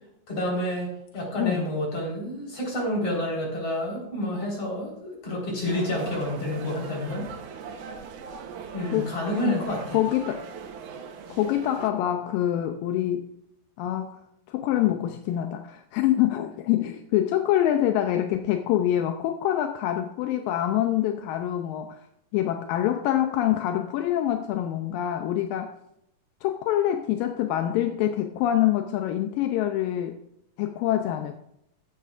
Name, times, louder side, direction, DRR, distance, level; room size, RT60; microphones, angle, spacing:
voice 1, 0.3-0.9 1.1-7.3 8.7-10.0, left 1 dB, 45° left, -2 dB, 5.3 m, -29 dB
sound 1, 5.7-11.9, right 6 dB, 70° right, 2.3 m, -40 dB
voice 2, 9.9-10.5 11.3-13.3 13.8-14.2 14.5-22.0 22.3-25.7 26.4-30.2 30.6-31.4, left 12 dB, 85° left, 6 dB, 2.4 m, -25 dB
15.0 x 12.0 x 2.5 m, 0.78 s
omnidirectional pair, 3.9 m